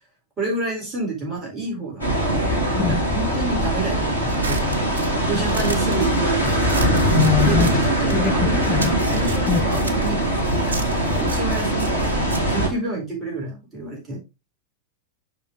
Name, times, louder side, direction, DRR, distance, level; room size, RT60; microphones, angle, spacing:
voice 1, 0.4-2.4 2.9-6.6 7.4-14.2, right 3 dB, 20° right, 4.4 m, -29 dB
sound 1, 2.0-12.7, right 1 dB, 85° left, 1.7 m, -21 dB
sound 2, 4.3-8.3 8.6-13.4, right 4 dB, 70° right, 0.8 m, -35 dB
voice 2, 7.1-7.7 8.1-8.3 8.7-8.9 9.5-9.6, left 9 dB, 25° left, 0.3 m, -22 dB
7.2 x 5.4 x 3.1 m
figure-of-eight pair, 90°, 0 cm